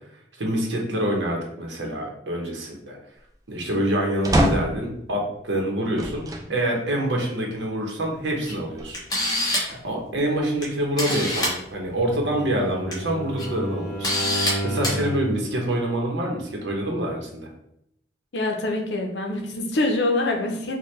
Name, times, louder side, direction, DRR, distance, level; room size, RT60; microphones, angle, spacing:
voice 1, 0.4-3.0 3.5-9.4 9.7-17.5, right 1 dB, 85° right, 0 dB, 0.8 m, -26 dB
sound 1, 4.2-4.9 6.0-6.5 7.2-7.3 8.5-9.3, equal, 20° right, 0.4 m, -24 dB
Camera, 8.4-8.5 8.9-9.8 10.6-10.7 11.0-11.5 12.7-12.9 13.4-13.5 14.0-14.5 14.8-15.0, left 1 dB, 20° left, 0.9 m, -24 dB
Bowed string instrument, 11.8-15.4, right 1 dB, 60° left, 1.1 m, -31 dB
voice 2, 18.3-20.8, left 2 dB, 80° left, 3 dB, 0.7 m, -25 dB
4.3 x 2.2 x 3.2 m, 0.77 s
head